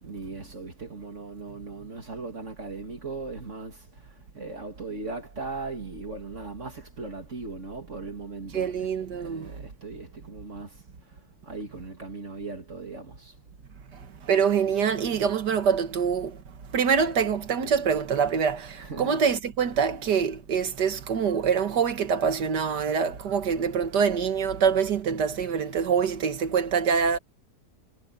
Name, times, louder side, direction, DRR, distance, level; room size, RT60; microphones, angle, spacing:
voice 1, 0.0-3.8 4.3-10.7 11.4-13.3 18.8-19.2 19.9-20.1, right 3 dB, 45° right, 2.5 m, -38 dB
voice 2, 8.5-9.5 14.2-16.4 16.7-27.2, right 6 dB, 90° right, 2.1 m, -25 dB
omnidirectional pair, 1.7 m